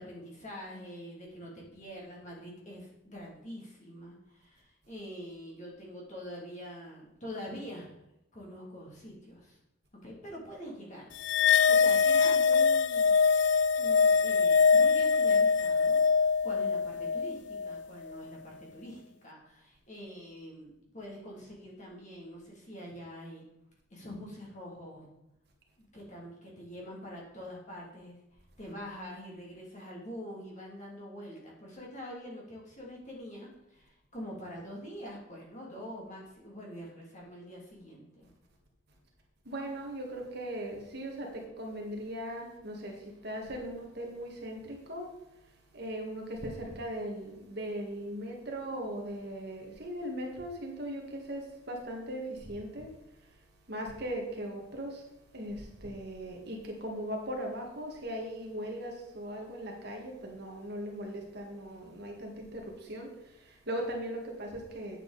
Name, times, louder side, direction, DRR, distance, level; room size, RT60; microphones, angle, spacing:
voice 1, 0.0-7.9 8.3-9.6 10.0-13.1 13.8-23.5 23.9-25.1 25.9-28.2 28.6-38.3, equal, 40° left, -3 dB, 2.7 m, -45 dB
sound 1, 11.2-17.8, left 5 dB, 60° left, 0.3 m, -24 dB
voice 2, 39.5-45.1 45.7-52.9 53.7-55.0 55.3-63.1 63.5-65.0, right 1 dB, 55° right, 1 dB, 1.8 m, -39 dB
8.8 x 7.4 x 4.1 m, 0.85 s
head